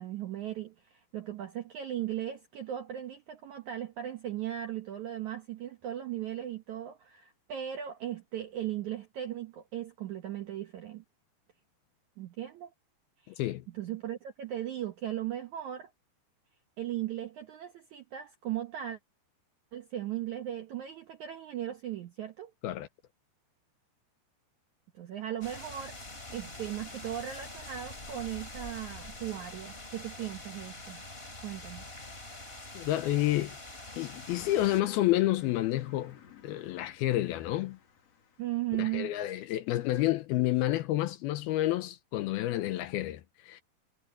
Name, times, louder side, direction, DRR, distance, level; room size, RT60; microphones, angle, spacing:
voice 1, 0.0-11.0 12.2-12.7 13.2-13.4 13.7-15.9 16.8-19.0 19.7-22.5 24.9-26.0 26.3-31.0 31.4-31.8 38.4-39.1, right 12 dB, 75° right, 1.8 m, -37 dB
sound 1, 25.4-34.8, left 2 dB, 15° left, 3.5 m, -45 dB
voice 2, 32.7-33.6 34.0-36.2 36.4-37.8 38.8-43.6, left 15 dB, 80° left, 2.4 m, -29 dB
Car passing by, 34.3-39.2, left 8 dB, 45° left, 2.7 m, -55 dB
omnidirectional pair, 4.9 m